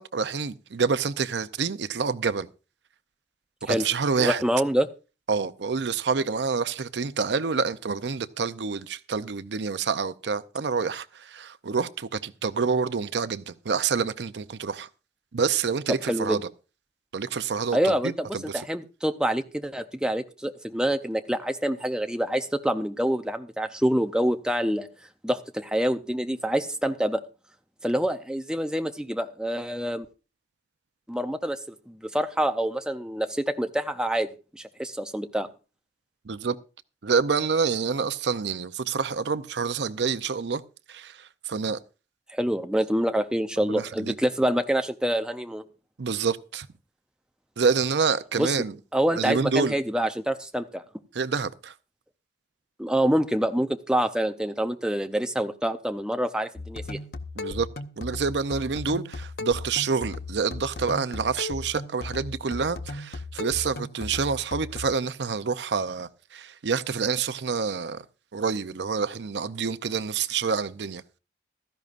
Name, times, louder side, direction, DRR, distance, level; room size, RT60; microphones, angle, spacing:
voice 1, 0.0-2.5 3.6-4.4 5.3-14.9 15.3-16.4 17.1-18.6 36.3-36.6 37.0-40.6 40.9-41.8 43.6-44.1 46.0-46.7 47.6-48.7 49.2-49.8 51.1-51.7 57.4-57.7 58.0-68.0 68.3-71.0, right 5 dB, 75° right, 0.6 m, -27 dB
voice 2, 4.2-4.9 16.1-16.4 17.7-24.9 25.2-27.2 27.8-30.1 31.1-31.6 31.9-35.5 42.3-45.6 48.4-48.5 48.9-50.8 52.8-57.0, equal, 5° right, 0.5 m, -26 dB
sound 1, 56.6-64.9, left 3 dB, 60° left, 0.8 m, -36 dB
16.0 x 13.5 x 2.5 m
head